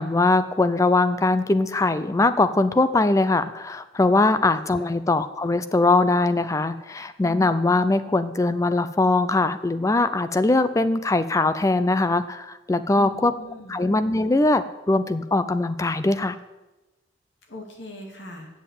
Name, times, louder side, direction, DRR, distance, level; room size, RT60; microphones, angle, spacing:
voice 1, 0.0-13.3 13.7-16.4, left 2 dB, 20° left, 13 dB, 0.4 m, -21 dB
voice 2, 13.0-13.8 17.5-18.5, left 1 dB, 85° left, 2 dB, 2.3 m, -40 dB
7.8 x 7.3 x 8.4 m, 1.1 s
head